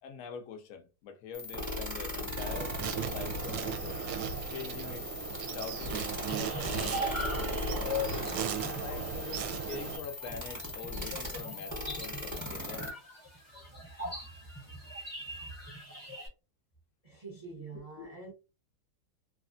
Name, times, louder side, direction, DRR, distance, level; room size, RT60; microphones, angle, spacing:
voice 1, 0.0-2.7 3.1-4.1 4.5-5.1 5.5-8.3 8.8-12.9 17.7-18.1, left 6 dB, 80° left, 0.7 m, -44 dB
sound 1, 1.3-12.9, left 1 dB, 15° right, 0.7 m, -39 dB
Insect, 2.4-10.0, right 7 dB, 75° right, 1.2 m, -37 dB
sound 2, 6.3-16.3, left 1 dB, 25° left, 0.3 m, -41 dB
voice 2, 13.7-14.1 14.7-14.8 15.2-15.5 17.0-18.3, right 4 dB, 55° right, 0.4 m, -47 dB
3.2 x 2.4 x 2.5 m
omnidirectional pair, 2.2 m